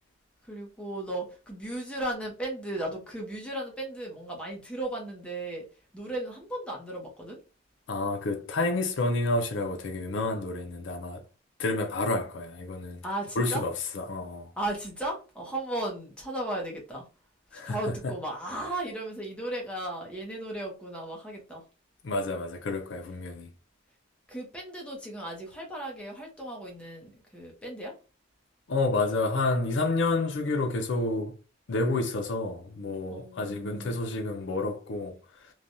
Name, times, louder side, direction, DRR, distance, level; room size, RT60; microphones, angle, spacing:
voice 1, 0.5-5.6 5.9-7.4 13.0-13.6 14.6-17.0 17.6-21.6 24.3-27.9 33.1-34.0, right 1 dB, 5° left, 0.7 m, -35 dB
voice 2, 7.9-11.2 11.6-13.0 13.4-14.5 17.5-18.1 22.0-23.5 28.7-31.3 31.7-35.5, left 2 dB, 65° left, 0.5 m, -29 dB
3.2 x 2.2 x 2.6 m
head